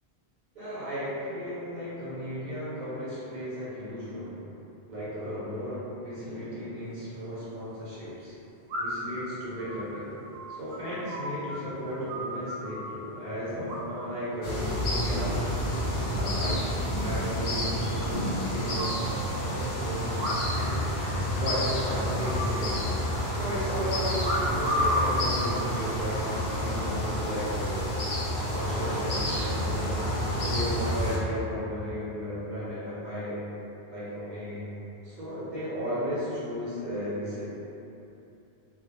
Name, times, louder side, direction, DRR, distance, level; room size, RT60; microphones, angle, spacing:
voice 1, 0.5-4.4 4.9-8.3 8.8-10.1 10.5-15.4 16.0-20.8 21.3-22.8 23.3-27.8 28.3-30.1 30.3-33.4 33.9-34.7 35.0-37.4, equal, 50° right, -10 dB, 0.8 m, -35 dB
sound 1, 6.9-7.0 8.7-9.1 9.6-11.6 11.8-12.9 13.7-14.2 14.5-14.9 15.3-15.8 16.1-16.2 16.4-16.5 16.8-16.9 17.2-17.3 18.0-19.0 20.1-20.7 21.0-21.1 21.4-21.7 22.2-23.1 24.2-25.1 25.8-26.2, equal, 85° right, 0.8 m, -33 dB
sound 2, 14.4-31.2, equal, 80° left, 0.8 m, -29 dB
2.4 x 2.0 x 2.9 m, 2.9 s
omnidirectional pair, 1.0 m